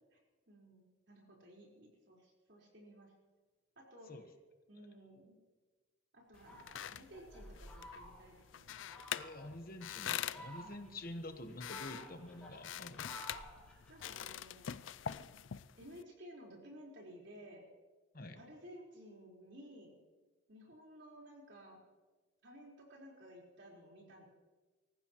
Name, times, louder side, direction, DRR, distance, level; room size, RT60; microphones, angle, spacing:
voice 1, 0.5-3.1 3.8-4.1 4.7-5.3 6.1-8.9 10.6-11.1 13.9-14.8 15.8-17.6 18.4-20.0 20.5-21.8 22.4-24.3, equal, 65° right, -2 dB, 4.5 m, -56 dB
sound 1, 6.3-16.0, left 10 dB, 80° left, 0.4 m, -45 dB
Fowl, 6.3-8.4 8.9-9.5 10.1-11.0 11.5-14.2, equal, 5° left, 3.9 m, -53 dB
voice 2, 9.1-13.2 18.1-18.4, left 1 dB, 50° left, 6 dB, 1.3 m, -48 dB
24.5 x 15.0 x 3.1 m, 1.3 s
head